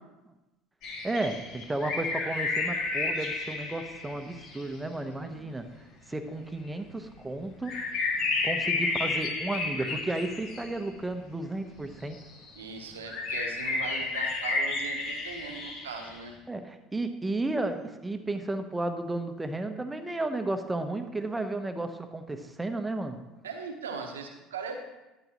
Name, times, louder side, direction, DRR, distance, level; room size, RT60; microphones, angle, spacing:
sound 1, 0.8-4.7 6.6-6.7 7.6-11.1 12.1-12.6 13.1-16.2, left 3 dB, 60° left, 2.4 m, -31 dB
voice 1, 1.0-7.8 8.4-12.2 16.5-23.2, right 2 dB, 15° right, 8 dB, 1.1 m, -33 dB
voice 2, 5.2-5.5 12.6-16.3 23.4-24.8, right 5 dB, 85° right, 4 dB, 1.2 m, -39 dB
11.5 x 9.1 x 3.1 m, 1.0 s
hypercardioid pair, 70°, 0 cm